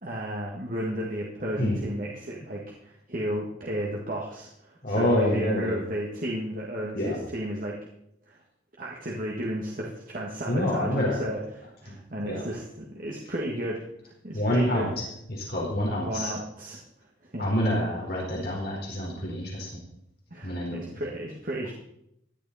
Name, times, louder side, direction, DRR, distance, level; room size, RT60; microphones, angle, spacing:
voice 1, 0.0-7.8 8.3-8.4 8.8-14.9 16.0-16.8 17.2-17.5 20.3-21.7, right 1 dB, 45° right, -2 dB, 1.8 m, -33 dB
voice 2, 4.8-5.8 6.9-7.2 10.5-11.2 11.9-12.0 12.2-12.4 14.3-14.9 15.3-16.3 17.4-19.7 20.4-20.8, left 1 dB, 55° left, -2 dB, 4.5 m, -27 dB
16.5 x 12.0 x 4.2 m, 0.77 s
head